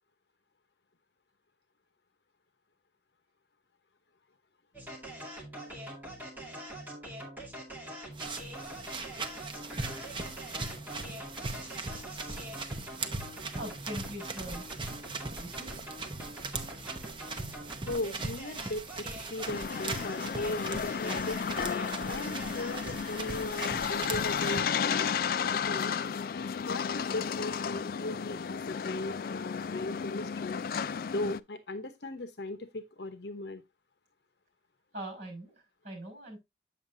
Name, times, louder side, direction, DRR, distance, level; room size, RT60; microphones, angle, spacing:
sound 1, 4.7-23.1, right 1 dB, 10° right, 2.3 m, -44 dB
sound 2, 8.1-24.6, right 3 dB, 30° right, 0.8 m, -40 dB
voice 1, 13.6-14.8 15.3-15.9 34.9-36.4, right 1 dB, 45° right, 5.4 m, -42 dB
voice 2, 17.9-25.1 25.5-25.9 26.4-30.6 31.1-33.6, left 2 dB, 70° left, 0.9 m, -38 dB
sound 3, 19.5-31.4, left 7 dB, 55° left, 0.3 m, -33 dB
8.2 x 7.3 x 2.6 m
head